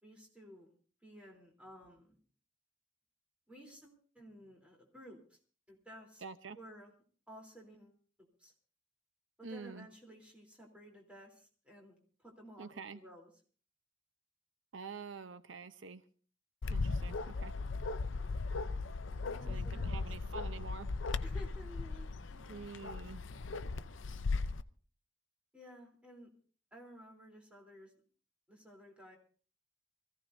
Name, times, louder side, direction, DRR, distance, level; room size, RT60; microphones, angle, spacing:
voice 1, 0.0-0.7 1.0-2.2 3.5-5.4 5.7-6.2 6.5-6.9 7.3-8.5 9.4-13.3 19.2-20.1 21.2-22.7 25.5-26.3 26.7-27.9 28.5-29.2, equal, 5° right, -1 dB, 3.5 m, -55 dB
voice 2, 6.2-6.6 9.4-9.9 12.6-13.0 14.7-16.0 16.7-17.5 19.5-20.9 22.5-23.2, right 5 dB, 85° right, 11 dB, 0.8 m, -47 dB
Bark, 16.6-24.6, left 3 dB, 85° left, 0.6 m, -37 dB
24.5 x 15.5 x 2.7 m, 0.42 s
head